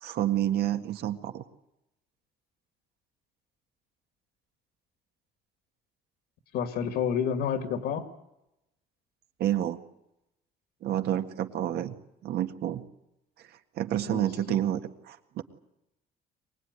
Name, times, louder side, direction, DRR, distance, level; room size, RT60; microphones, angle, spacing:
voice 1, 0.0-1.4 9.4-9.8 10.8-11.9 12.2-12.8 13.8-14.8 15.0-15.4, right 12 dB, 70° right, 7 dB, 1.8 m, -29 dB
voice 2, 6.5-8.1 14.0-14.6, left 7 dB, 80° left, 7 dB, 2.4 m, -30 dB
24.0 x 20.0 x 9.6 m, 0.89 s
cardioid pair, 110°, 17 cm